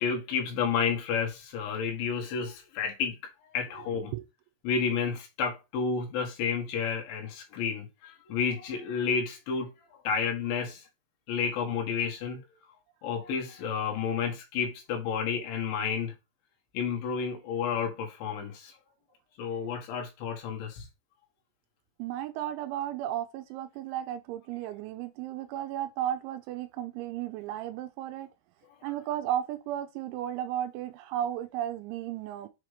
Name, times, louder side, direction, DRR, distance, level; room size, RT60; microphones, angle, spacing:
voice 1, 0.0-3.2 3.5-4.1 4.6-9.7 10.0-10.9 11.3-12.4 13.0-16.1 16.7-18.7 19.4-20.9, left 6 dB, 70° left, 3.4 m, -31 dB
voice 2, 22.0-28.3 28.8-32.5, right 11 dB, 85° right, 2.7 m, -34 dB
7.5 x 2.9 x 4.9 m
omnidirectional pair, 5.7 m